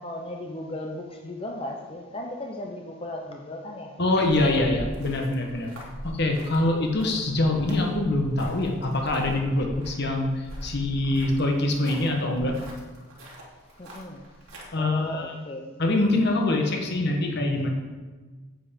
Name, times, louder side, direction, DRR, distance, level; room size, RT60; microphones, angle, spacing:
voice 1, 0.0-3.9 13.8-14.2 14.8-15.8, left 1 dB, 25° left, 1 dB, 0.7 m, -36 dB
voice 2, 4.0-5.7 6.0-12.6 14.7-15.3 15.8-17.7, left 2 dB, 50° left, 2 dB, 1.3 m, -24 dB
sound 1, 4.1-14.6, equal, 80° right, 2.9 m, -42 dB
9.0 x 8.2 x 5.2 m, 1.3 s
head